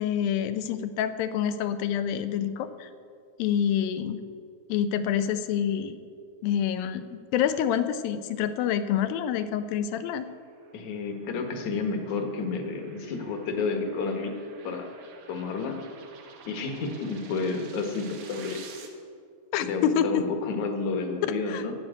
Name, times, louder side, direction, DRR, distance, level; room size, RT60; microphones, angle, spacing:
voice 1, 0.0-2.9 3.4-4.2 4.7-6.0 6.4-10.3 19.5-20.2 21.2-21.6, left 9 dB, 80° left, 11 dB, 2.3 m, -27 dB
sound 1, 10.0-18.9, right 6 dB, 90° right, 3.3 m, -50 dB
voice 2, 10.7-14.3 14.6-14.9 15.3-15.8 16.5-18.6 19.6-21.7, left 4 dB, 60° left, 4 dB, 2.3 m, -30 dB
10.5 x 9.2 x 8.2 m, 2.3 s
omnidirectional pair, 4.3 m